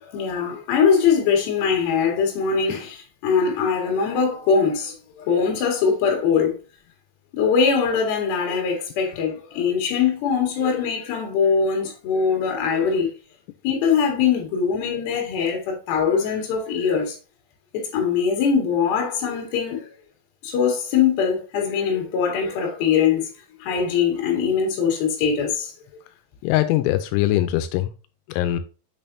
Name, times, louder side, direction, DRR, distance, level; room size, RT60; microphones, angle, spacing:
voice 1, 0.0-6.5 7.3-13.1 13.6-17.2 17.7-19.9 20.4-23.3 23.6-25.7, left 6 dB, 60° left, 3.1 m, -22 dB
voice 2, 26.4-27.9 28.3-28.6, left 14 dB, 85° left, 3.2 m, -21 dB
7.1 x 5.4 x 2.6 m
omnidirectional pair, 5.8 m